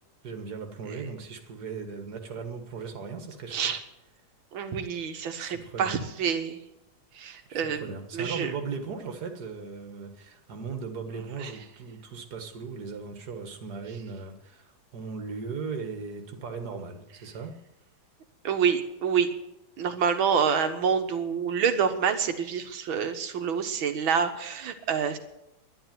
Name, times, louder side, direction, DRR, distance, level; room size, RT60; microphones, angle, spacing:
voice 1, 0.2-3.6 5.4-6.0 7.5-17.6, right 5 dB, 55° right, 5 dB, 2.1 m, -38 dB
voice 2, 4.5-6.6 7.1-7.8 8.1-8.5 11.4-11.5 18.4-19.3 19.8-25.2, right 7 dB, 85° right, 7 dB, 2.1 m, -27 dB
11.0 x 10.5 x 9.4 m, 0.87 s
omnidirectional pair, 2.1 m